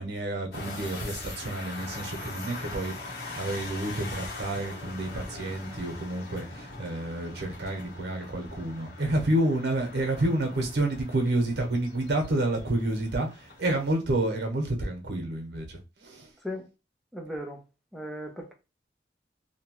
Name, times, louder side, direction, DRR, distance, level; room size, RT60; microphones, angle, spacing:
voice 1, 0.0-2.9 3.4-16.3, right 1 dB, 80° right, 0.8 m, -29 dB
sound 1, 0.5-14.0, left 3 dB, 70° left, 1.0 m, -42 dB
voice 2, 17.1-17.6 17.9-18.5, equal, ahead, 0.5 m, -36 dB
2.8 x 2.2 x 2.9 m
head